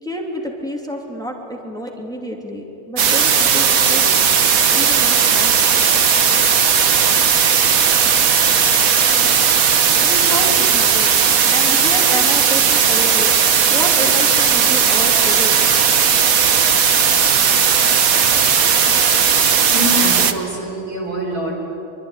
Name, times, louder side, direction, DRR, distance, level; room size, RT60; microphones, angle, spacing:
voice 1, 0.0-4.1 4.7-5.6 8.8-11.1 11.4-15.6, equal, ahead, 0 dB, 3.0 m, -29 dB
sound 1, 3.0-20.3, right 7 dB, 70° right, 1.6 m, -15 dB
voice 2, 19.7-21.5, equal, 85° right, 0 dB, 5.6 m, -24 dB
25.5 x 23.5 x 10.0 m, 2.9 s
omnidirectional pair, 1.6 m